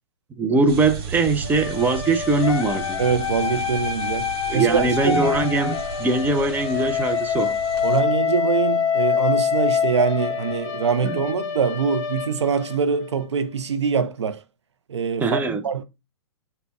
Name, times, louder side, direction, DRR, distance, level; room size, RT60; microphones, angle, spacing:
voice 1, 0.4-3.0 4.5-7.6 11.0-11.2 15.2-15.6, right 3 dB, 10° right, 0.5 m, -21 dB
sound 1, 0.7-8.0, right 6 dB, 55° right, 1.0 m, -36 dB
sound 2, 1.4-13.2, left 7 dB, 40° left, 0.9 m, -26 dB
voice 2, 3.0-5.2 7.8-14.4 14.9-15.8, right 6 dB, 80° right, 0.5 m, -24 dB
4.1 x 2.2 x 4.2 m
hypercardioid pair, 115°, 15 cm